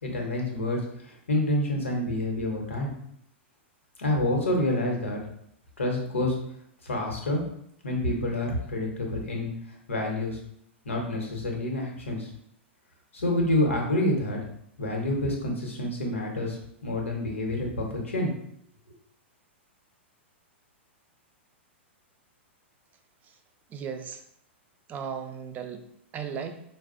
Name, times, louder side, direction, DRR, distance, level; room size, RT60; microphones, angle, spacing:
voice 1, 0.0-2.9 4.0-5.2 5.8-6.4 6.8-7.4 7.8-9.5 9.9-10.4 10.8-12.3 13.1-14.4 14.8-18.3, left 1 dB, 90° left, 0 dB, 0.9 m, -28 dB
voice 2, 23.7-24.2 24.9-25.8 26.1-26.6, right 7 dB, 25° right, 6 dB, 0.4 m, -36 dB
4.5 x 2.1 x 2.5 m, 0.71 s
hypercardioid pair, 115°, 7 cm